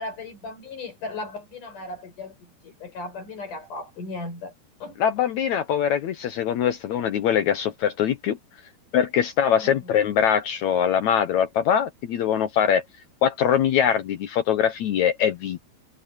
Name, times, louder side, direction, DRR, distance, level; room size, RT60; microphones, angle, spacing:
voice 1, 0.0-4.5 4.8-5.0 9.5-9.9, left 2 dB, 55° left, 7.2 m, -36 dB
voice 2, 5.0-8.4 8.9-12.8 13.2-15.6, left 8 dB, 75° left, 1.7 m, -22 dB
omnidirectional pair, 4.5 m